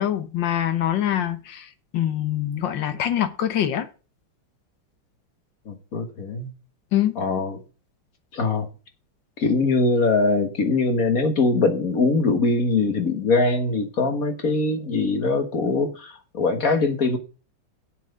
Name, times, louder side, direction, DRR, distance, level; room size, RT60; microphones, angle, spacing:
voice 1, 0.0-3.9 6.9-7.2, left 11 dB, 65° left, 1.7 m, -24 dB
voice 2, 5.7-6.5 7.2-7.6 8.3-8.7 9.4-17.2, left 3 dB, 45° left, 1.7 m, -22 dB
8.1 x 6.0 x 7.7 m
omnidirectional pair, 2.3 m